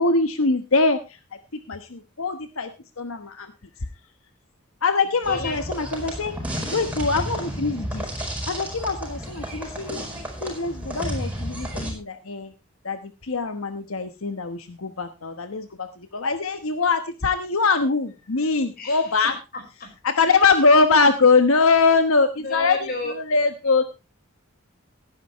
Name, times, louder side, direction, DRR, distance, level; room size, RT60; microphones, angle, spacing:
voice 1, 0.0-1.4 1.7-2.7 3.0-3.5 3.8-3.9 4.8-6.4 6.7-10.1 10.4-12.5 12.8-19.3 20.0-23.8, left 4 dB, 90° left, 8 dB, 1.2 m, -22 dB
sound 1, 5.2-11.9, equal, 5° right, 4.9 m, -32 dB
voice 2, 5.3-5.6 18.8-19.9 20.2-20.3 22.4-23.1, left 3 dB, 45° left, 4 dB, 5.0 m, -32 dB
17.0 x 10.0 x 3.1 m, 0.29 s
head